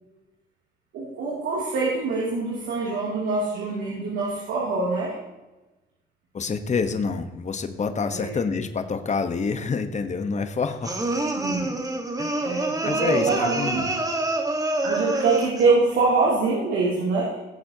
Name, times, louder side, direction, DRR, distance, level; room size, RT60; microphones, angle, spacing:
voice 1, 0.9-5.1 8.1-8.3 11.4-11.7 12.4-13.8 14.8-17.4, right 3 dB, 85° right, -5 dB, 2.8 m, -24 dB
voice 2, 6.3-11.0 12.2-12.5 12.8-13.9, left 5 dB, 35° left, 8 dB, 1.1 m, -27 dB
sound 1, 10.8-15.7, right 2 dB, 15° right, 1.6 m, -27 dB
16.5 x 7.4 x 2.9 m, 1.1 s
cardioid pair, 90°, 20 cm